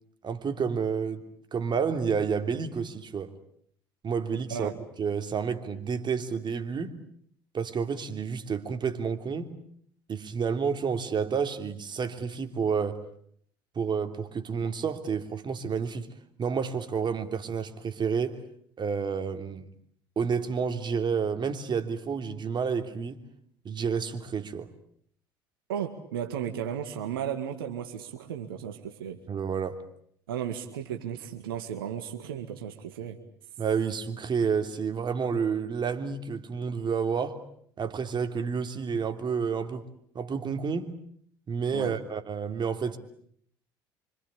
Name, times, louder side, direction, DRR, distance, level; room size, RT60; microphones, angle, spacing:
voice 1, 0.2-1.2 1.5-3.3 4.0-4.7 5.0-6.9 7.5-9.5 10.1-13.0 13.7-16.1 16.4-18.4 18.8-19.7 20.2-23.2 23.6-24.7 29.3-29.8 33.6-37.4 37.8-39.9 40.1-40.9 41.5-43.0, right 6 dB, 40° right, 3.1 m, -30 dB
voice 2, 25.7-29.2 30.3-33.2 41.7-41.9, right 9 dB, 85° right, 2.0 m, -34 dB
26.5 x 25.5 x 8.5 m
hypercardioid pair, 60°, 12 cm